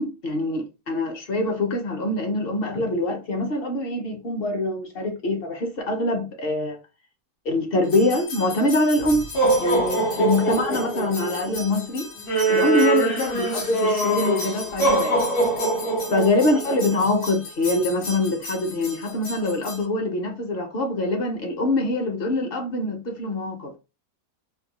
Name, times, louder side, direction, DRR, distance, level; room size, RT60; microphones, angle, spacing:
voice 1, 0.0-6.8 7.4-9.2 9.6-12.1 12.5-15.2 16.1-23.7, left 2 dB, 45° left, 0.8 m, -24 dB
sound 1, 7.9-19.8, right 2 dB, 75° left, 1.7 m, -25 dB
3.6 x 2.3 x 2.9 m
omnidirectional pair, 1.6 m